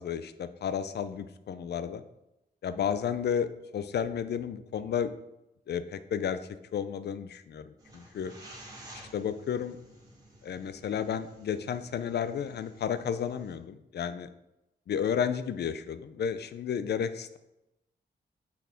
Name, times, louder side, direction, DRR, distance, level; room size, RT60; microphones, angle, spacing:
voice 1, 0.0-2.0 2.6-5.1 5.7-6.4 6.7-8.3 9.1-9.8 10.4-14.3 14.9-17.4, left 8 dB, 80° left, 12 dB, 0.5 m, -32 dB
sound 1, 7.8-13.6, right 1 dB, 20° right, 1.8 m, -52 dB
6.3 x 5.8 x 4.4 m, 0.90 s
wide cardioid pair, 150°, 17 cm